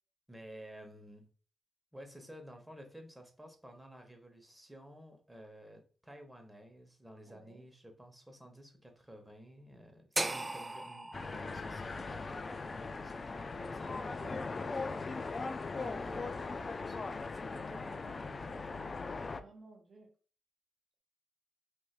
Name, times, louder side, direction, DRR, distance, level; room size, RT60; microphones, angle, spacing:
voice 1, 0.3-1.2 1.9-14.1 15.7-18.9, equal, 10° right, 4 dB, 1.0 m, -53 dB
voice 2, 7.3-7.6 14.2-15.0 19.3-20.1, right 3 dB, 60° right, -1 dB, 0.7 m, -55 dB
sound 1, 10.2-14.3, right 2 dB, 25° right, 0.4 m, -40 dB
sound 2, 11.1-19.4, left 4 dB, 50° left, 0.3 m, -39 dB
3.0 x 2.6 x 2.3 m, 0.39 s
supercardioid pair, 40°, 0 cm